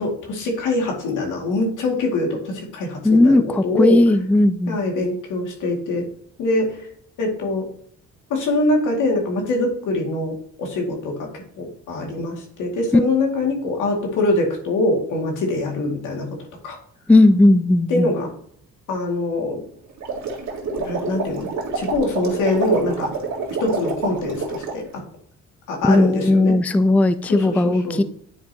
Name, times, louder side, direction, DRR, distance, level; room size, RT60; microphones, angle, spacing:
voice 1, 0.0-4.0 4.7-6.1 6.4-6.8 7.2-7.7 8.3-11.3 11.6-16.4 16.6-16.8 17.9-18.3 18.9-19.6 20.7-21.5 21.7-23.1 23.6-24.8 25.7-26.6 27.3-28.0, left 2 dB, 85° left, 2.2 m, -23 dB
voice 2, 3.0-4.8 17.1-18.1 25.8-28.0, left 2 dB, 5° left, 0.3 m, -16 dB
sound 1, 19.9-24.8, right 4 dB, 65° right, 1.9 m, -27 dB
9.6 x 4.9 x 2.8 m
cardioid pair, 90°, 30 cm